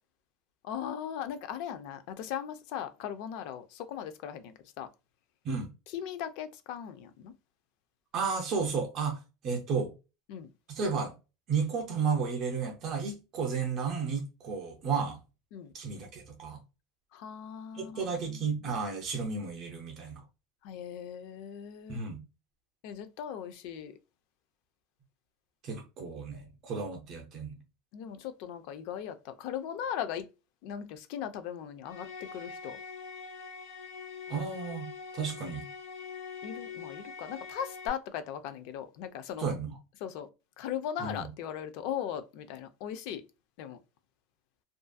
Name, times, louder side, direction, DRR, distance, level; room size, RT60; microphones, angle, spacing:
voice 1, 0.6-4.9 5.9-7.3 10.3-10.5 15.5-15.7 17.1-18.5 20.6-22.0 22.8-23.9 27.9-30.3 30.6-32.8 36.4-39.5 40.0-40.3 40.6-43.2 43.6-43.8, left 9 dB, 45° left, 0.3 m, -38 dB
voice 2, 8.1-9.2 9.4-9.9 10.7-11.1 11.5-15.2 15.7-16.6 17.8-20.2 21.9-22.2 25.6-27.6 34.3-35.7 39.4-39.8 41.0-41.3, right 5 dB, 30° right, 0.5 m, -33 dB
sound 1, 31.8-37.9, left 5 dB, 75° left, 1.3 m, -43 dB
2.5 x 2.4 x 2.2 m
supercardioid pair, 180°, 0 cm